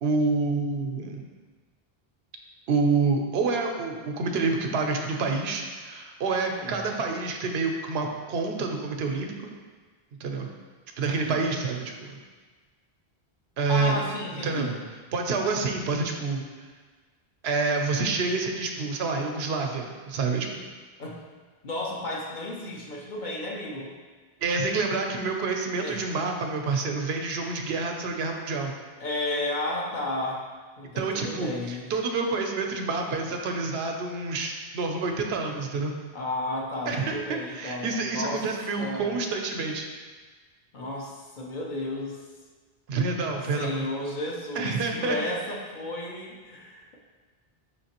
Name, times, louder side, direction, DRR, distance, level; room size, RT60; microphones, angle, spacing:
voice 1, 0.0-1.2 2.7-9.5 10.2-10.5 11.0-12.2 13.6-14.0 14.4-14.8 15.1-16.5 17.4-20.6 24.4-28.7 31.0-35.9 36.9-39.9 42.9-43.9 44.6-45.2, right 4 dB, 90° right, 3 dB, 0.8 m, -28 dB
voice 2, 6.4-6.9 11.0-11.5 13.7-14.8 21.0-21.2 21.6-24.0 25.8-26.0 29.0-30.5 30.8-31.9 36.1-38.4 38.8-39.1 40.7-42.2 43.5-47.0, left 1 dB, 55° left, -2 dB, 0.8 m, -33 dB
5.7 x 3.2 x 2.9 m, 1.4 s
omnidirectional pair, 1.0 m